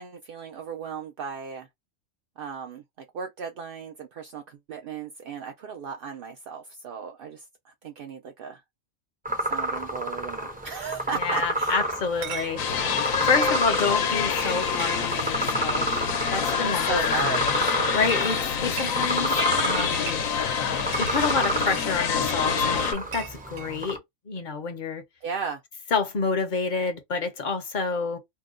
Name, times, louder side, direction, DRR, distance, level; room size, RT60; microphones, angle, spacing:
voice 1, 0.0-1.7 2.4-8.6 9.4-11.9 13.2-13.6 16.6-17.5 25.2-25.6, right 5 dB, 65° right, 0.5 m, -35 dB
sound 1, 9.2-24.0, right 1 dB, 10° right, 0.5 m, -30 dB
voice 2, 11.1-12.6 13.2-15.9 16.3-17.6 17.9-20.2 21.0-24.0 24.3-25.0 25.9-28.2, left 4 dB, 45° left, 0.7 m, -28 dB
Chatter / Chink clink, 12.0-23.7, right 9 dB, 90° right, 1.0 m, -42 dB
sound 2, 12.6-22.9, left 7 dB, 80° left, 1.1 m, -26 dB
2.7 x 2.2 x 3.6 m
omnidirectional pair, 1.4 m